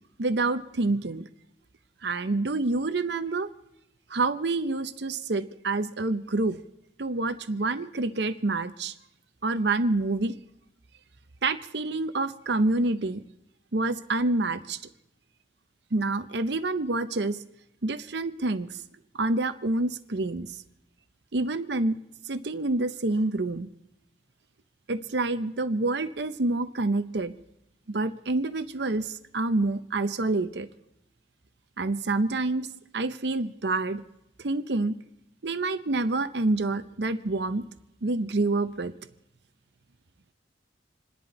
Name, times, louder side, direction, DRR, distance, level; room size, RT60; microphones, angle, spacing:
voice 1, 0.2-1.3 2.0-3.5 4.1-6.6 7.0-8.9 9.4-10.4 11.4-13.2 13.7-14.8 15.9-17.4 17.8-18.8 19.2-20.5 21.3-22.0 22.3-23.7 24.9-27.3 27.9-30.7 31.8-32.7 32.9-34.0 34.4-35.0 35.4-37.7 38.0-38.9, right 2 dB, 65° right, 11 dB, 0.7 m, -27 dB
28.0 x 10.5 x 4.2 m, 0.82 s
head